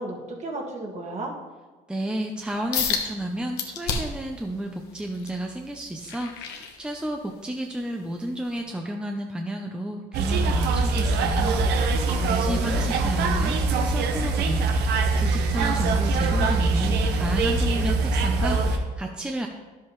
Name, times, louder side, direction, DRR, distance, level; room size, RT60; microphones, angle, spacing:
voice 1, 0.0-1.3 12.1-12.9, right 2 dB, 40° right, 0 dB, 1.7 m, -34 dB
voice 2, 1.9-12.0 12.3-14.8 15.2-19.5, right 1 dB, 5° right, 2 dB, 0.6 m, -32 dB
sound 1, 2.7-3.1 3.6-4.3 4.8-7.3 7.8-8.0 8.6-8.7, left 6 dB, 90° left, 1.1 m, -30 dB
sound 2, 10.1-18.8, right 3 dB, 80° right, 0.9 m, -23 dB
10.5 x 7.4 x 3.1 m, 1.3 s
cardioid pair, 110°, 17 cm